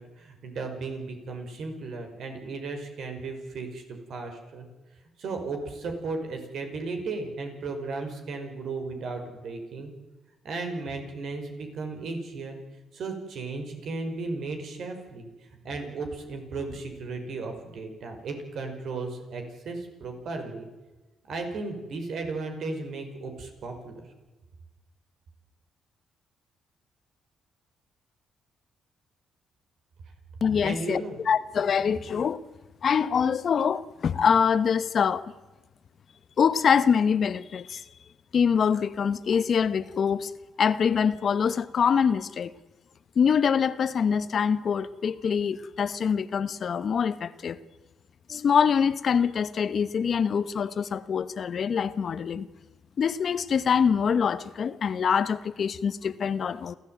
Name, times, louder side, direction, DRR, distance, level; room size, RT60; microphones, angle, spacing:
voice 1, 0.0-4.7 5.2-9.9 10.4-12.6 12.9-20.7 21.3-23.9 30.6-31.2, right 3 dB, 65° right, 5.4 m, -35 dB
voice 2, 30.4-32.4 32.8-35.3 36.4-37.8 38.3-40.3 40.6-42.5 43.2-47.6 48.3-52.5 53.0-56.8, left 7 dB, 50° left, 1.0 m, -24 dB
28.5 x 13.5 x 9.2 m
cardioid pair, 90°, 0 cm